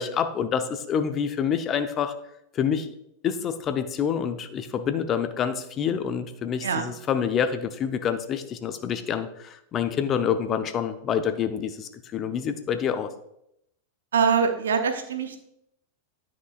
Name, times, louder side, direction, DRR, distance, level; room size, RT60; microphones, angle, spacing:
voice 1, 0.0-2.2 2.5-2.9 3.2-13.1, left 7 dB, 35° left, 9 dB, 0.7 m, -27 dB
voice 2, 14.1-15.4, right 6 dB, 75° right, 8 dB, 0.7 m, -23 dB
9.8 x 6.1 x 2.4 m, 0.78 s
figure-of-eight pair, 95°, 0 cm